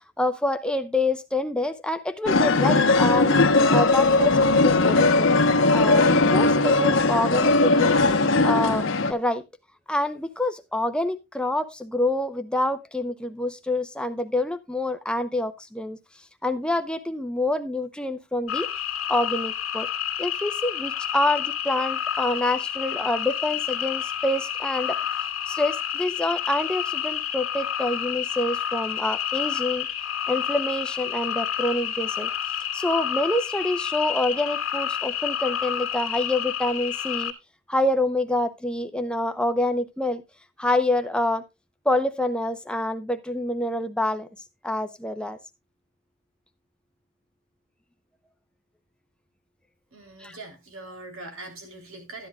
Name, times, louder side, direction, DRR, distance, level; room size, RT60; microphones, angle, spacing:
voice 1, 0.2-3.3 3.7-5.3 5.7-8.0 8.4-9.4 9.9-16.0 16.4-18.7 19.1-19.9 20.2-25.0 25.5-29.9 30.3-32.3 32.7-37.3 37.7-40.2 40.6-41.4 41.8-44.3 44.6-45.4 50.2-50.4, left 1 dB, 5° left, 8 dB, 0.7 m, -26 dB
sound 1, 2.3-9.1, left 3 dB, 65° left, 1.1 m, -19 dB
sound 2, 18.5-37.3, left 9 dB, 85° left, 1.9 m, -29 dB
voice 2, 49.9-52.3, right 2 dB, 80° right, 3 dB, 3.3 m, -42 dB
13.0 x 10.5 x 2.3 m, 0.22 s
head